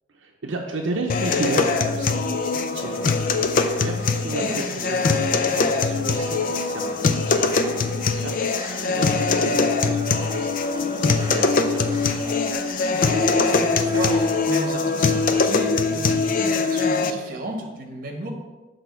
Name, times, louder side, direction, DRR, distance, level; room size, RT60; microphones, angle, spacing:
voice 1, 0.1-5.5 5.8-12.3, right 2 dB, 80° right, 1 dB, 0.6 m, -33 dB
sound 1, 1.1-17.1, left 4 dB, 45° left, 0.4 m, -22 dB
sound 2, 2.4-14.7, right 1 dB, 25° right, 0.9 m, -42 dB
voice 2, 12.9-18.3, right 2 dB, 50° right, 3 dB, 1.1 m, -34 dB
6.2 x 3.4 x 5.6 m, 1.2 s
head